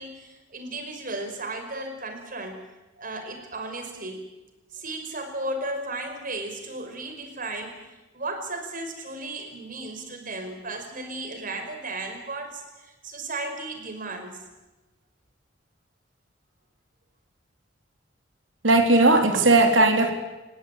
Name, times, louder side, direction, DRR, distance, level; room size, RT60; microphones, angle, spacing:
voice 1, 0.0-2.6 3.0-4.2 4.7-7.8 8.1-14.4, right 2 dB, 45° right, 6 dB, 5.1 m, -35 dB
voice 2, 18.6-20.1, right 2 dB, 85° right, 5 dB, 3.8 m, -17 dB
29.5 x 17.5 x 9.1 m, 1.1 s
head